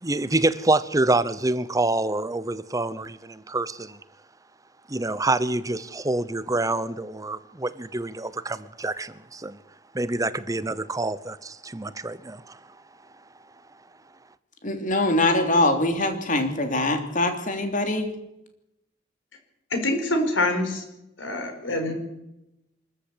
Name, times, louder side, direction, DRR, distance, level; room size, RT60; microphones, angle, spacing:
voice 1, 0.0-4.0 4.9-9.6 9.9-12.6, right 2 dB, 20° right, 0.8 m, -26 dB
voice 2, 14.6-18.1, left 2 dB, 40° left, 3.1 m, -23 dB
voice 3, 19.7-20.8 21.2-21.9, left 1 dB, 80° left, 4.8 m, -25 dB
24.0 x 14.0 x 8.4 m
head